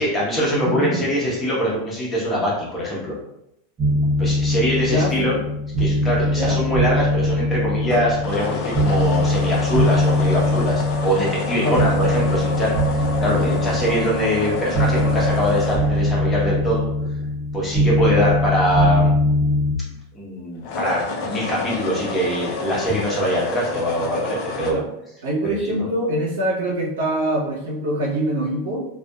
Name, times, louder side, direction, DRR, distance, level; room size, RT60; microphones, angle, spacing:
voice 1, 0.0-3.1 4.2-5.4 5.8-16.9 17.5-19.1 20.1-24.8 25.7-25.9, equal, 20° left, -5 dB, 1.0 m, -23 dB
voice 2, 0.5-1.0 4.9-5.4 6.3-6.6 11.6-11.9 13.3-13.6 18.1-18.3 24.7-24.9 25.2-28.8, right 1 dB, 90° right, -4 dB, 0.9 m, -24 dB
sound 1, 3.8-19.7, left 1 dB, 25° right, 0.8 m, -21 dB
sound 2, 7.8-17.1 20.5-24.7, left 3 dB, 55° left, 0.5 m, -29 dB
2.5 x 2.4 x 2.3 m, 0.81 s
supercardioid pair, 130°, 0 cm